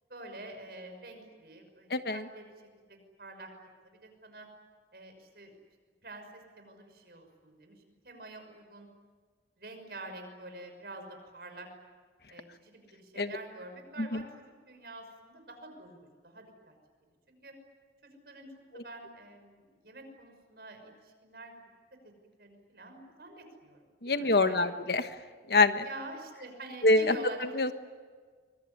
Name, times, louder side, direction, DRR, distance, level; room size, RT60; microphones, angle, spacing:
voice 1, 0.1-2.5 2.9-4.5 4.9-5.5 6.0-8.9 9.6-11.7 12.3-14.2 14.7-16.8 17.3-17.5 18.0-18.5 18.7-21.5 22.4-24.7 25.8-27.6, right 2 dB, 60° right, 5 dB, 6.0 m, -47 dB
voice 2, 1.9-2.3 13.2-13.3 14.0-14.2 18.7-18.8 24.0-25.1 25.5-25.8 26.8-27.7, left 3 dB, 65° left, 9 dB, 1.4 m, -26 dB
25.0 x 23.0 x 9.8 m, 1.5 s
head